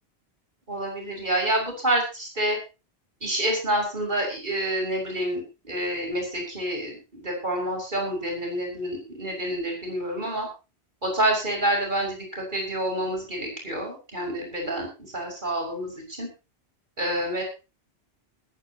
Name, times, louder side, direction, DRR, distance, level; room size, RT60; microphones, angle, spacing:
voice 1, 0.7-2.6 3.2-10.5 11.0-14.9 15.1-16.3 17.0-17.4, right 1 dB, 45° right, 0 dB, 6.3 m, -28 dB
20.5 x 13.0 x 3.0 m, 0.30 s
omnidirectional pair, 1.1 m